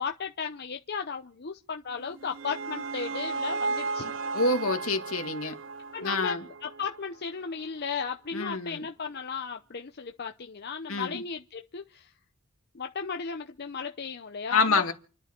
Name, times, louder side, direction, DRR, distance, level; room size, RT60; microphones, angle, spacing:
voice 1, 0.0-4.1 5.9-12.1 12.7-14.9, left 5 dB, 50° left, 0.8 m, -35 dB
sound 1, 2.0-7.2, right 4 dB, 60° right, 0.7 m, -35 dB
voice 2, 4.3-5.6 6.0-6.4 8.3-8.9 10.9-11.2 14.5-14.9, left 3 dB, 75° left, 2.1 m, -27 dB
28.5 x 11.0 x 4.5 m
head